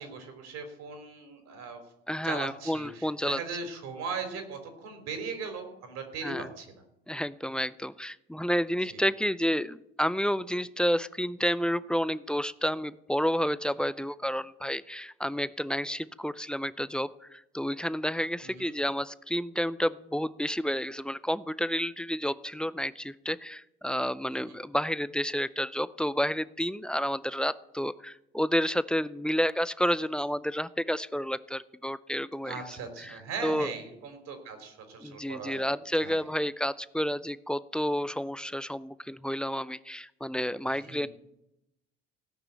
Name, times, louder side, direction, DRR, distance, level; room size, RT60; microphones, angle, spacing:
voice 1, 0.0-1.8 2.2-6.7 8.9-9.0 18.4-18.7 24.3-24.6 32.4-35.7 36.0-36.2 40.8-41.1, right 5 dB, 60° right, 6 dB, 3.6 m, -39 dB
voice 2, 2.1-3.4 6.2-6.5 7.1-32.5 33.0-33.7 35.0-41.1, equal, 5° left, 17 dB, 0.4 m, -30 dB
16.5 x 6.0 x 7.9 m, 0.87 s
hypercardioid pair, 65°, 30 cm